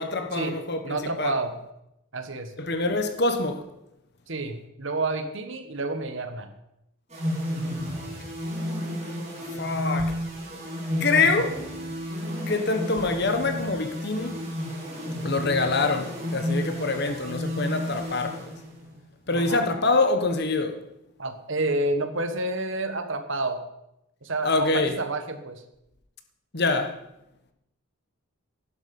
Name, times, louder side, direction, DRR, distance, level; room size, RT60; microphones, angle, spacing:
voice 1, 0.0-1.4 2.6-3.6 9.6-10.2 11.0-11.6 12.5-14.3 15.2-18.5 19.3-20.7 24.4-25.0 26.5-27.0, left 3 dB, 50° left, 1.3 m, -25 dB
voice 2, 0.8-1.5 2.1-2.5 4.3-6.5 19.3-19.7 21.2-23.6 24.2-25.6, right 2 dB, 60° right, 1.4 m, -29 dB
sound 1, 7.1-19.0, equal, 30° right, 3.7 m, -32 dB
11.5 x 11.5 x 5.5 m
head